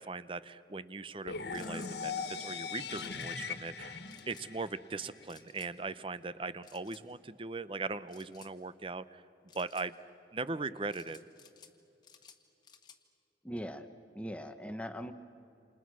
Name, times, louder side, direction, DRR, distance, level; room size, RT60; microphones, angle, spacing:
voice 1, 0.0-9.2 9.5-9.9 10.3-11.2, right 3 dB, 30° right, 15 dB, 0.7 m, -39 dB
sound 1, 1.2-5.2, left 5 dB, 75° left, 1.7 m, -40 dB
sound 2, 1.5-1.9 2.9-3.3 4.1-4.5 5.3-5.7 6.6-7.0 8.1-8.5 9.5-9.9 10.9-11.7 12.0-13.0, left 7 dB, 25° left, 1.6 m, -57 dB
voice 2, 13.4-13.9 14.1-15.1, equal, 5° left, 7 dB, 0.9 m, -40 dB
29.0 x 27.5 x 6.2 m, 2.8 s
head